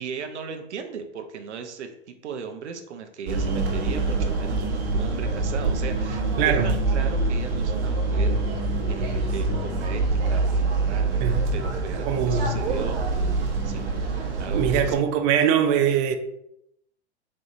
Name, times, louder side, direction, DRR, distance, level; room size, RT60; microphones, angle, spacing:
voice 1, 0.0-13.0 13.6-13.9 14.4-15.6, right 6 dB, 90° right, 0.6 m, -37 dB
sound 1, 3.3-15.0, right 3 dB, 60° right, 1.2 m, -25 dB
voice 2, 12.1-12.5 14.5-16.2, right 8 dB, 40° right, 0.5 m, -22 dB
4.1 x 3.5 x 2.6 m
hypercardioid pair, 110°, 34 cm